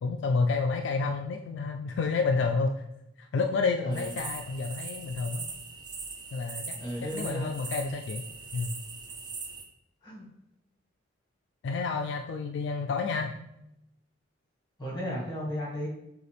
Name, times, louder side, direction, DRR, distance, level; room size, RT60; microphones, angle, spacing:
voice 1, 0.0-2.8 3.3-5.5 6.3-6.7 7.1-8.3 8.5-8.7 11.6-13.3, left 4 dB, 65° left, 4 dB, 0.3 m, -29 dB
sound 1, 3.9-9.6, right 4 dB, 25° right, 0.5 m, -40 dB
voice 2, 6.7-7.5 10.0-10.2 14.8-15.9, equal, 25° left, -4 dB, 1.7 m, -34 dB
6.6 x 2.4 x 3.3 m, 0.84 s
head